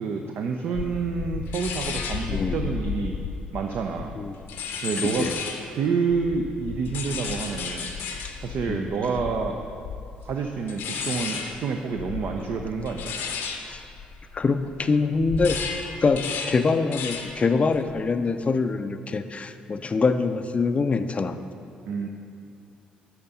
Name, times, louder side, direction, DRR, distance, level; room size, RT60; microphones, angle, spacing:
voice 1, 0.0-3.2 3.5-4.2 4.8-5.3 5.7-7.9 8.4-9.6 10.2-13.1 21.9-22.1, right 5 dB, 50° right, 3 dB, 0.5 m, -28 dB
sound 1, 0.7-5.8 6.1-14.8 15.1-17.4 17.7-18.1, left 6 dB, 60° left, 0.7 m, -33 dB
voice 2, 2.3-2.6 4.2-4.4 5.0-5.3 8.7-8.9 13.7-13.8 14.3-21.4, left 4 dB, 30° left, 9 dB, 0.5 m, -24 dB
11.0 x 4.3 x 5.3 m, 2.5 s
figure-of-eight pair, 45°, 4 cm